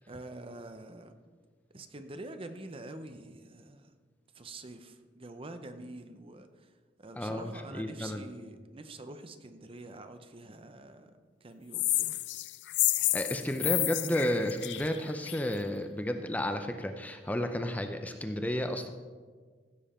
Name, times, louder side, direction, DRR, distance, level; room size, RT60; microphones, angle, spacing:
voice 1, 0.1-1.1 1.7-3.9 4.3-12.2, right 2 dB, 30° right, 8 dB, 0.7 m, -46 dB
voice 2, 7.2-8.3 13.0-18.9, left 1 dB, 10° left, 6 dB, 0.5 m, -32 dB
sound 1, 11.7-15.5, left 17 dB, 70° left, 0.4 m, -30 dB
15.0 x 7.1 x 4.3 m, 1.6 s
head